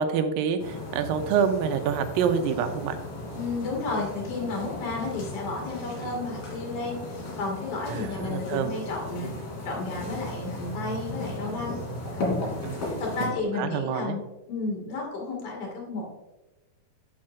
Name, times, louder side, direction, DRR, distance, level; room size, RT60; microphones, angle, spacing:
voice 1, 0.0-3.0 6.0-6.2 7.9-8.8 12.6-13.3 13.6-14.2, right 7 dB, 80° right, 8 dB, 2.4 m, -27 dB
sound 1, 0.6-13.2, left 2 dB, 90° left, 4.4 m, -35 dB
voice 2, 3.4-9.3 9.6-11.8 12.1-12.5 13.0-14.2 14.5-16.1, left 3 dB, 55° left, -1 dB, 3.3 m, -32 dB
9.5 x 8.6 x 2.5 m, 1.0 s
omnidirectional pair, 4.2 m